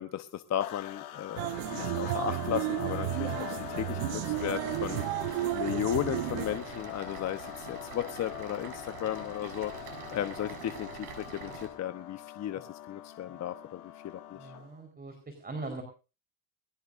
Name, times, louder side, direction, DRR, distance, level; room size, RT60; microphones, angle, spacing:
voice 1, 0.0-14.5, left 11 dB, 35° left, 10 dB, 1.0 m, -35 dB
sound 1, 0.6-14.8, left 14 dB, 85° left, 2.2 m, -43 dB
sound 2, 1.4-6.6, right 19 dB, 65° right, 0.9 m, -33 dB
sound 3, 4.3-11.7, right 6 dB, 85° right, 6.3 m, -45 dB
voice 2, 14.3-15.8, right 3 dB, 20° right, 6 dB, 4.7 m, -41 dB
22.5 x 17.5 x 2.6 m, 0.33 s
hypercardioid pair, 85°, 44 cm